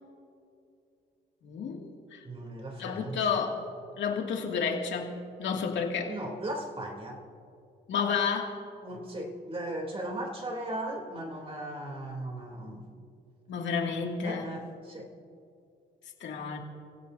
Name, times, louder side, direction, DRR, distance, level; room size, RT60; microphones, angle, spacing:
voice 1, 1.4-2.2 2.8-3.6 4.0-6.1 7.9-8.7 13.5-14.5 16.2-16.6, left 6 dB, 70° left, 1 dB, 2.5 m, -31 dB
voice 2, 2.2-3.2 6.1-7.2 8.8-12.8 14.2-15.1, right 1 dB, 30° right, 0 dB, 3.3 m, -37 dB
29.0 x 16.5 x 2.8 m, 2.5 s
cardioid pair, 90°, 20 cm